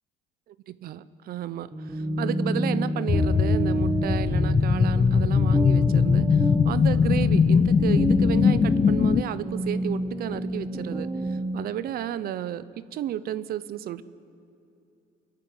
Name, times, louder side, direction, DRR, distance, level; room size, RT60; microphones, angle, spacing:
voice 1, 0.7-14.0, right 11 dB, 65° right, 15 dB, 0.7 m, -33 dB
sound 1, 1.7-11.7, right 1 dB, 5° right, 1.8 m, -29 dB
sound 2, 3.1-9.2, left 6 dB, 25° left, 0.5 m, -21 dB
26.5 x 11.5 x 9.5 m, 2.8 s
cardioid pair, 110°, 17 cm